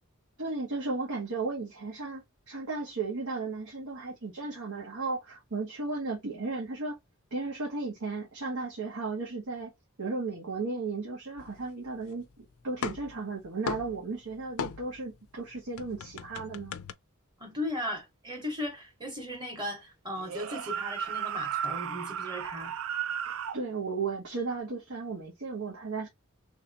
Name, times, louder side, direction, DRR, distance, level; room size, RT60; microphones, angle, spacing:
voice 1, 0.4-2.2 2.5-7.0 7.3-9.7 10.0-16.7 23.2-26.1, right 3 dB, 90° right, 1.3 m, -35 dB
sound 1, 11.4-12.3 12.6-15.1 15.4-16.9, left 6 dB, 75° left, 0.4 m, -39 dB
voice 2, 17.4-22.7, left 1 dB, 20° right, 1.2 m, -37 dB
sound 2, 20.2-23.6, right 8 dB, 65° right, 0.4 m, -34 dB
3.2 x 2.9 x 4.0 m
head